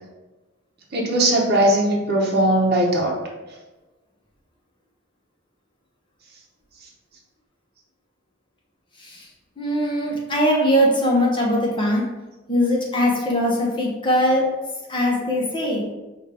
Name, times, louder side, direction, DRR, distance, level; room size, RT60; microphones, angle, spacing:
voice 1, 0.9-3.1, right 1 dB, 55° right, -1 dB, 0.8 m, -19 dB
voice 2, 9.6-12.0 12.5-14.6 14.9-15.8, equal, 25° left, -3 dB, 0.9 m, -20 dB
5.2 x 2.5 x 3.3 m, 1.1 s
head